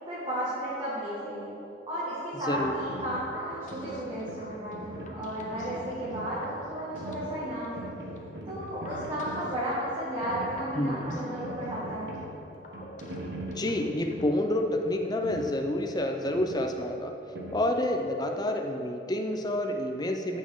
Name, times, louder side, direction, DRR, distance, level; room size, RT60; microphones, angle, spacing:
voice 1, 0.1-1.5 1.9-7.9 8.5-12.1, equal, 30° right, -10 dB, 2.1 m, -33 dB
voice 2, 2.5-2.8 10.7-11.2 13.6-17.1 17.5-20.4, left 1 dB, 25° left, 4 dB, 0.7 m, -29 dB
sound 1, 2.5-18.2, right 1 dB, 70° right, 1.5 m, -42 dB
sound 2, 3.3-14.4, left 2 dB, 45° left, 1.0 m, -48 dB
15.0 x 6.3 x 3.8 m, 2.9 s
head